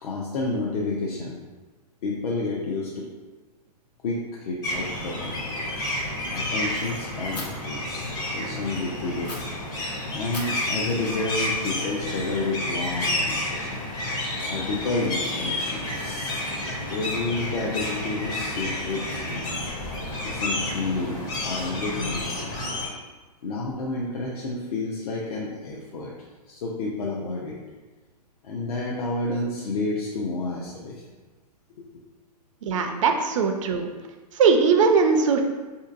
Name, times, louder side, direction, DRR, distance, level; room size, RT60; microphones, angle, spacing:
voice 1, 0.0-1.4 2.0-3.1 4.0-5.5 6.3-9.5 10.1-13.8 14.3-16.4 16.7-19.7 20.2-22.6 23.4-26.1 26.5-27.6 28.4-31.1, left 3 dB, 65° left, -3 dB, 0.6 m, -30 dB
sound 1, 4.6-22.9, left 1 dB, 20° left, 0.5 m, -30 dB
Fire, 7.3-7.4 9.2-9.4 10.3-12.3, left 3 dB, 85° left, 1.0 m, -40 dB
voice 2, 32.6-33.9 34.3-35.4, right 5 dB, 50° right, 5 dB, 0.4 m, -20 dB
4.4 x 2.7 x 2.5 m, 1.3 s
hypercardioid pair, 150°, 21 cm